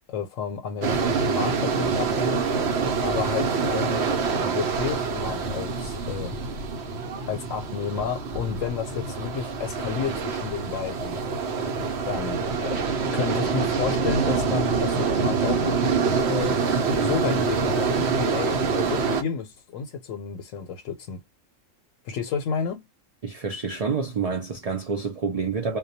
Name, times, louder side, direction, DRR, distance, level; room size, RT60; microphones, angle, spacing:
voice 1, 0.1-2.4 3.0-6.4 7.3-11.2 12.0-12.9 13.1-16.6 17.0-21.2 22.0-22.9, left 6 dB, 85° left, 1.0 m, -31 dB
sound 1, 0.8-19.2, right 5 dB, 65° right, 0.8 m, -26 dB
voice 2, 23.2-25.8, right 5 dB, 80° right, 0.3 m, -28 dB
2.2 x 2.2 x 2.6 m
omnidirectional pair, 1.3 m